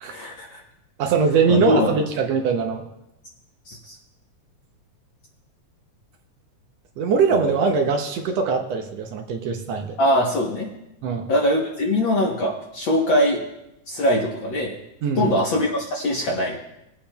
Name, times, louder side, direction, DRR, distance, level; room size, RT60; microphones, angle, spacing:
voice 1, 0.1-0.6 1.5-2.0 3.7-4.0 10.0-10.7 11.3-13.4 13.9-14.7 15.2-16.6, left 1 dB, 60° left, -1 dB, 1.3 m, -22 dB
voice 2, 1.0-2.8 7.0-10.0 11.0-11.3 15.0-15.3, right 5 dB, 75° right, 3 dB, 1.7 m, -22 dB
22.0 x 8.5 x 2.2 m, 0.87 s
omnidirectional pair, 3.3 m